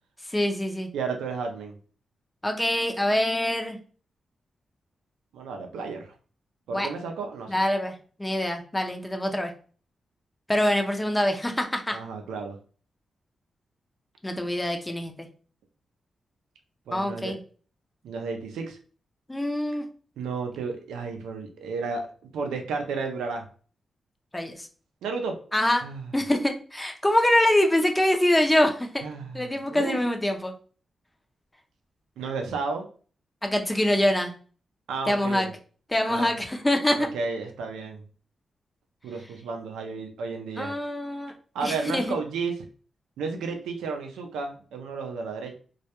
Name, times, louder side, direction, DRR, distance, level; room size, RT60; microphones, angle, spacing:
voice 1, 0.3-0.9 2.4-3.8 6.7-6.9 7.5-7.9 8.2-9.5 10.5-12.0 14.2-15.1 16.9-17.4 19.3-19.9 24.3-24.7 25.5-25.8 26.1-29.1 29.3-30.5 33.4-34.3 35.1-35.5 35.9-37.1 40.6-41.3 41.6-42.1, left 1 dB, 15° left, 4 dB, 0.5 m, -24 dB
voice 2, 0.9-1.8 5.3-6.1 6.7-7.6 11.9-12.6 16.9-17.3 18.0-18.8 20.2-22.1 22.3-23.4 25.0-25.4 25.8-26.1 29.0-30.0 32.2-32.9 34.9-35.5 36.1-36.4 36.9-38.0 39.0-40.7 41.5-42.6 43.2-45.6, right 4 dB, 90° right, 4 dB, 0.4 m, -32 dB
2.2 x 2.1 x 2.8 m, 0.40 s
supercardioid pair, 50°, 0 cm